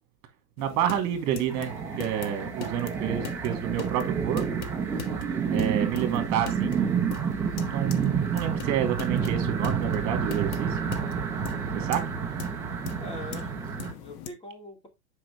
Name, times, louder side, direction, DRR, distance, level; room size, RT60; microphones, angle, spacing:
sound 1, 0.6-14.3, left 8 dB, 35° left, 1.1 m, -41 dB
voice 1, 0.6-4.7 5.5-6.8 7.6-10.8 11.7-12.1, right 10 dB, 35° right, 2.5 m, -29 dB
sound 2, 1.5-13.9, right 6 dB, 5° right, 0.4 m, -29 dB
voice 2, 13.0-14.9, left 1 dB, 10° left, 2.4 m, -42 dB
7.6 x 5.3 x 3.5 m
hypercardioid pair, 125°, 49 cm